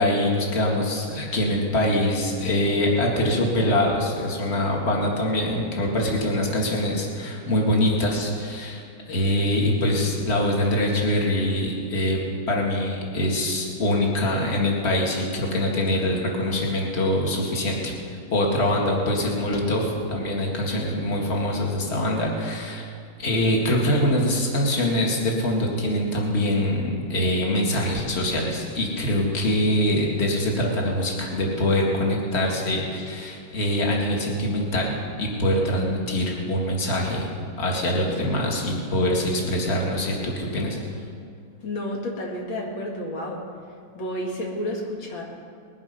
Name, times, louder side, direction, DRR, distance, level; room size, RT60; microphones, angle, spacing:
voice 1, 0.0-8.8 9.1-12.2 12.5-17.9 18.3-19.8 20.1-22.8 23.2-34.9 35.2-37.3 37.6-40.8, left 1 dB, 35° left, -1 dB, 2.3 m, -24 dB
voice 2, 41.6-43.4 43.9-45.2, left 1 dB, 80° left, -1 dB, 2.8 m, -30 dB
20.5 x 10.5 x 5.4 m, 2.2 s
omnidirectional pair, 2.1 m